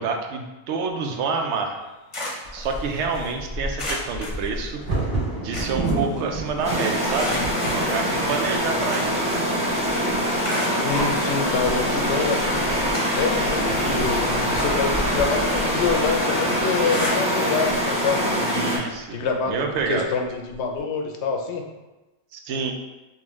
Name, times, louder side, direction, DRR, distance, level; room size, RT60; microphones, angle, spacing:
voice 1, 0.0-1.8 2.5-4.8 5.4-7.4 7.7-9.1 18.5-19.2 19.5-20.1 22.3-22.7, right 4 dB, 90° right, 4 dB, 0.9 m, -27 dB
sound 1, 1.7-3.3 3.8-5.1 5.3-6.7 7.1-9.6 9.9-11.1 11.8-11.9 12.4-13.5 13.8-17.6 17.9-18.1 18.5-18.6 19.8-19.9, left 1 dB, 35° left, 0.7 m, -35 dB
Bird vocalization bird call bird song / Wind / Thunder, 2.4-18.3 19.0-19.1 19.4-19.8 20.3-20.8, right 2 dB, 65° right, 1.7 m, -33 dB
sound 2, 6.6-18.8, equal, 5° right, 0.6 m, -24 dB
voice 2, 10.6-12.7 13.1-19.5 19.9-21.7, left 5 dB, 85° left, 3 dB, 0.9 m, -27 dB
3.7 x 2.8 x 3.0 m, 1.1 s
omnidirectional pair, 1.1 m